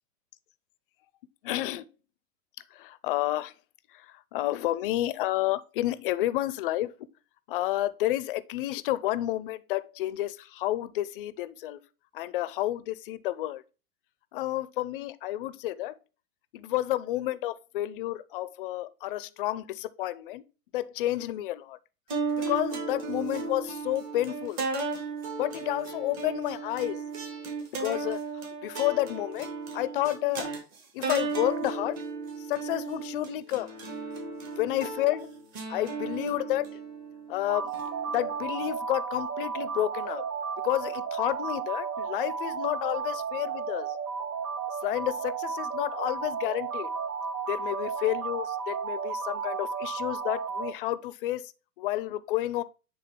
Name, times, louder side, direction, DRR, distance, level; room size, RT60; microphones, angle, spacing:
voice 1, 1.4-1.9 2.7-3.5 3.9-6.9 7.5-11.8 12.1-13.6 14.3-16.0 16.5-20.4 20.7-21.8 22.4-24.7 25.4-27.0 27.8-28.2 28.6-30.5 30.9-32.0 32.4-33.8 34.6-35.3 35.7-36.8 37.3-37.7 38.1-40.2 40.6-44.0 44.8-46.9 47.5-51.5 51.8-52.6, left 15 dB, 40° left, 0.4 m, -30 dB
sound 1, 22.1-38.6, right 4 dB, 35° right, 2.5 m, -35 dB
sound 2, 37.5-50.7, right 6 dB, 80° right, 1.2 m, -33 dB
8.6 x 3.6 x 3.6 m
hypercardioid pair, 125°, 47 cm